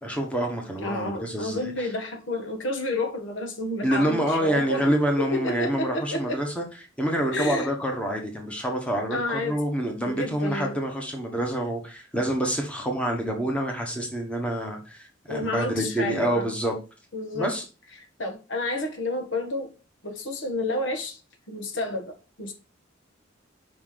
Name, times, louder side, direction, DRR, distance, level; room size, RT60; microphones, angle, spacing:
voice 1, 0.0-1.9 3.8-6.6 7.0-16.7 17.3-17.6, right 1 dB, 5° left, 1.5 m, -27 dB
voice 2, 0.8-6.4 7.3-7.7 9.1-9.6 10.0-10.8 15.3-16.5 17.1-17.5 18.2-19.7 20.0-21.2 21.5-22.5, left 2 dB, 70° left, 1.4 m, -30 dB
5.1 x 4.4 x 5.8 m
head